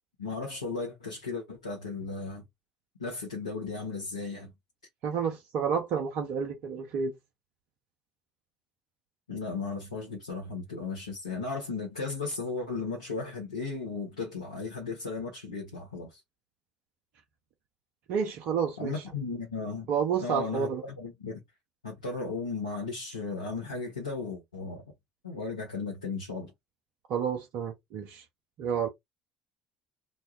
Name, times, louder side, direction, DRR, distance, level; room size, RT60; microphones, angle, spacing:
voice 1, 0.2-2.5 3.0-4.5 9.3-16.2 18.8-19.9 20.2-21.4 21.8-24.8 25.2-26.5, left 4 dB, 85° left, 0.8 m, -35 dB
voice 2, 5.0-7.1 18.1-18.9 19.9-20.8 27.1-28.2 28.6-28.9, right 7 dB, 60° right, 0.6 m, -30 dB
3.0 x 2.2 x 2.7 m
figure-of-eight pair, 55°, 3 cm